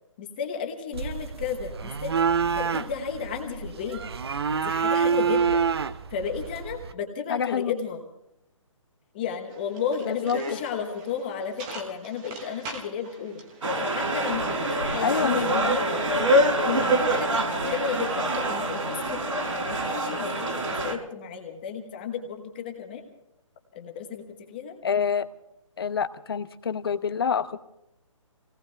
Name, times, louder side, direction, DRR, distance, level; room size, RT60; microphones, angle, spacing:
voice 1, 0.2-2.1 2.5-4.0 4.5-5.6 6.1-8.0 9.1-13.4 13.8-16.0 16.6-23.1 23.7-24.8, left 7 dB, 20° left, 4 dB, 1.2 m, -33 dB
sound 1, 0.9-6.9, right 6 dB, 50° right, 0.7 m, -27 dB
voice 2, 7.3-7.7 10.1-10.4 15.0-15.6 24.8-25.3 25.8-27.6, left 7 dB, 45° left, 11 dB, 0.9 m, -26 dB
sound 2, 9.5-14.5, right 2 dB, 15° right, 1.1 m, -41 dB
sound 3, 13.6-21.0, right 1 dB, 75° right, 4.0 m, -25 dB
23.0 x 18.0 x 3.4 m, 0.80 s
hypercardioid pair, 175°, 17 cm